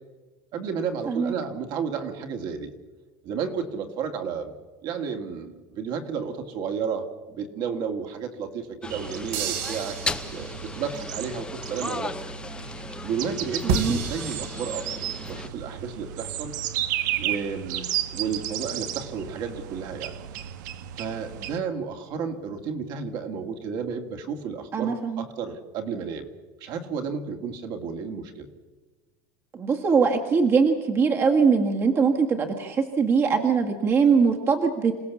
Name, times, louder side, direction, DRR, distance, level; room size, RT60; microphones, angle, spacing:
voice 1, 0.5-2.7 3.2-4.5 4.8-12.3 13.0-16.5 17.2-20.1 21.0-26.3 26.6-28.5, right 6 dB, 45° right, 5 dB, 2.2 m, -32 dB
sound 1, 8.8-15.5, left 3 dB, 10° left, 0.8 m, -37 dB
sound 2, 8.9-21.6, right 11 dB, 85° right, 1.3 m, -34 dB
sound 3, 9.3-10.9 13.7-15.3, right 5 dB, 65° right, 2.8 m, -31 dB
voice 2, 13.6-14.0 24.7-25.3 29.5-34.9, right 5 dB, 25° right, 2 dB, 1.7 m, -22 dB
27.5 x 17.5 x 7.2 m, 1.3 s
supercardioid pair, 155°, 10 cm